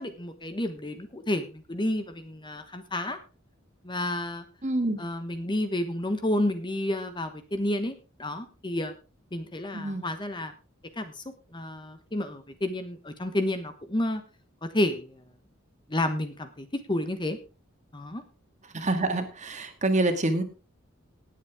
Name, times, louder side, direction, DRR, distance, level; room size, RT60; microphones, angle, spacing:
voice 1, 0.0-3.2 3.8-4.4 5.0-8.9 9.3-10.5 11.0-11.2 11.5-14.2 14.6-15.2 15.9-17.4 17.9-18.2, left 1 dB, 25° left, 8 dB, 1.1 m, -30 dB
voice 2, 4.6-5.0 9.7-10.0 18.7-20.4, right 2 dB, 35° right, 6 dB, 2.0 m, -26 dB
18.5 x 8.2 x 3.6 m, 0.33 s
head